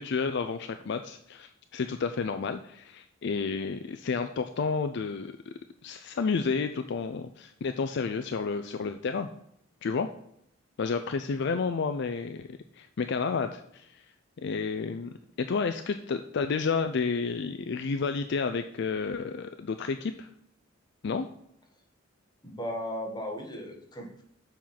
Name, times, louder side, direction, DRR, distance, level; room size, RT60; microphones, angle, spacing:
voice 1, 0.0-5.5 5.8-9.3 9.8-10.1 10.8-14.0 14.4-20.3 21.0-21.3, left 5 dB, 60° left, 8 dB, 0.4 m, -31 dB
voice 2, 22.4-24.2, equal, 20° left, 2 dB, 1.5 m, -36 dB
7.2 x 4.4 x 5.7 m, 0.72 s
head